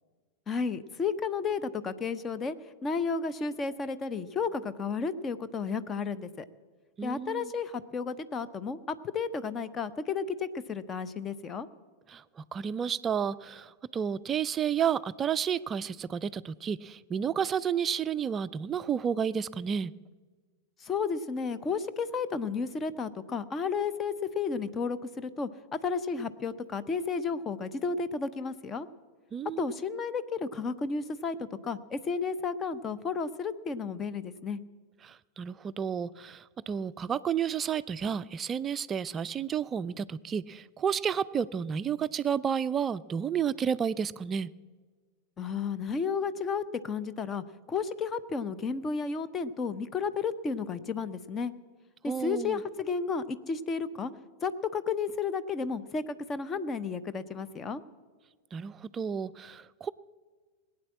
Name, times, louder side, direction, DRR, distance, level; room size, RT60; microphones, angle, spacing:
voice 1, 0.5-2.6 2.8-6.5 7.0-11.7 20.8-28.9 29.6-31.4 31.6-34.6 45.4-51.5 52.0-54.1 54.4-57.8, left 5 dB, 20° left, 14 dB, 0.7 m, -32 dB
voice 2, 7.0-7.5 12.1-19.9 29.3-29.7 35.0-44.5 52.1-52.6 58.5-59.9, right 7 dB, 25° right, 16 dB, 0.4 m, -31 dB
20.0 x 8.7 x 7.4 m, 1.4 s
figure-of-eight pair, 90°, 0 cm